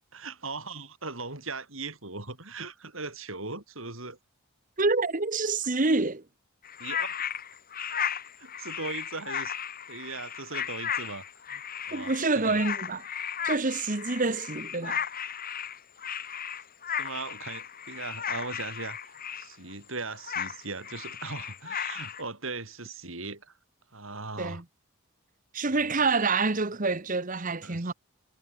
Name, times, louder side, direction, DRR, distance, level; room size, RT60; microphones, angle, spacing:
voice 1, 0.1-4.2 6.8-7.2 8.4-9.5 9.9-11.2 11.5-11.6 11.9-12.6 16.9-23.5 23.9-24.6 25.7-26.0 27.6-27.9, right 3 dB, 65° right, 6.0 m, -39 dB
voice 2, 4.8-6.2 11.9-13.0 13.4-15.0 24.4-24.6 25.5-27.9, right 3 dB, 40° right, 1.3 m, -27 dB
sound 1, 6.6-19.7 20.1-22.2, left 8 dB, 40° left, 3.3 m, -35 dB
head